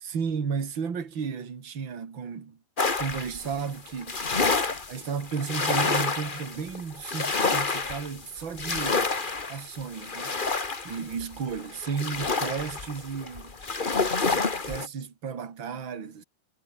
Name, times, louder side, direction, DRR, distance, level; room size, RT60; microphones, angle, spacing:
voice 1, 0.0-2.6 3.0-4.2 4.9-9.1 9.5-10.4 10.8-13.5 14.3-16.2, right 6 dB, 40° right, 3.2 m, -33 dB
sound 1, 2.8-14.9, left 4 dB, 30° left, 1.0 m, -28 dB
omnidirectional pair, 3.7 m